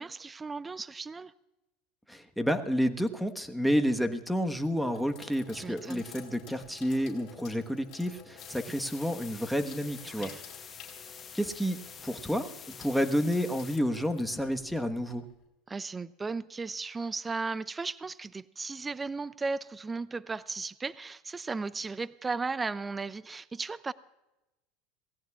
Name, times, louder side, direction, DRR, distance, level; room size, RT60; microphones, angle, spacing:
voice 1, 0.0-1.3 5.5-6.0 10.1-10.4 15.7-23.9, right 4 dB, 20° right, 19 dB, 0.4 m, -36 dB
voice 2, 2.1-10.3 11.3-11.8 12.0-15.2, equal, ahead, 6 dB, 1.3 m, -30 dB
Sink (filling or washing), 3.5-3.9 4.5-15.4, left 8 dB, 50° left, 4.6 m, -52 dB
sound 1, 8.4-13.8, left 7 dB, 35° left, 1.0 m, -47 dB
26.5 x 17.5 x 2.4 m, 1.0 s
hypercardioid pair, 85°, 0 cm